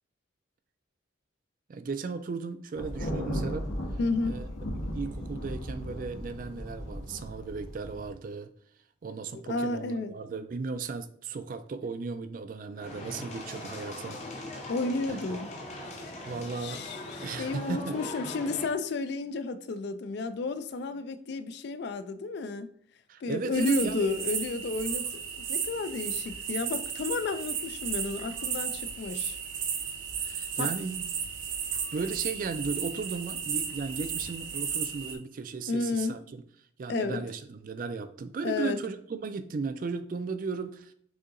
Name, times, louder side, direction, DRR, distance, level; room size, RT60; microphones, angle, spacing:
voice 1, 1.7-3.7 4.2-4.5 4.9-8.5 9.0-14.2 15.3-15.4 16.3-16.8 17.1-18.0 23.1-24.1 30.2-31.1 31.9-36.2 36.8-40.9, right 4 dB, 45° right, 0.3 m, -36 dB
Thunder, 2.8-8.1, equal, 80° left, 1.0 m, -36 dB
voice 2, 4.0-4.4 9.5-10.1 14.7-15.5 16.5-22.7 23.2-25.1 25.4-29.4 30.6-30.7 35.7-36.1 36.9-37.2 38.4-38.8, left 3 dB, 55° left, 0.3 m, -32 dB
sound 1, 12.8-18.7, left 2 dB, 35° left, 0.7 m, -40 dB
sound 2, 23.5-35.2, right 7 dB, 75° right, 0.7 m, -34 dB
6.3 x 2.8 x 2.5 m
head